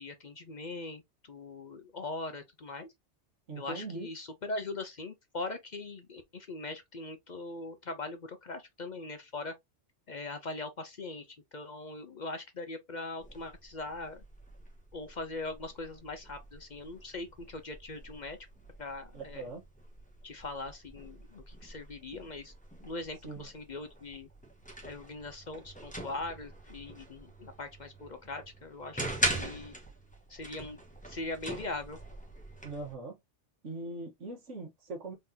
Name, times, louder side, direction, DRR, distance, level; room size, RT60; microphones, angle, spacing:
voice 1, 0.0-2.9 3.6-9.5 10.1-14.2 14.9-18.4 18.8-19.5 20.2-22.5 22.8-24.3 24.8-29.0 29.3-29.7 30.3-30.8 31.1-32.0, left 2 dB, 45° left, 0.7 m, -41 dB
voice 2, 3.5-4.1 19.1-19.6 23.2-23.4 32.6-33.2 33.6-35.2, right 2 dB, 85° right, 1.6 m, -41 dB
sound 1, 13.2-32.9, right 1 dB, 5° left, 1.1 m, -42 dB
3.9 x 3.7 x 2.8 m
omnidirectional pair, 1.2 m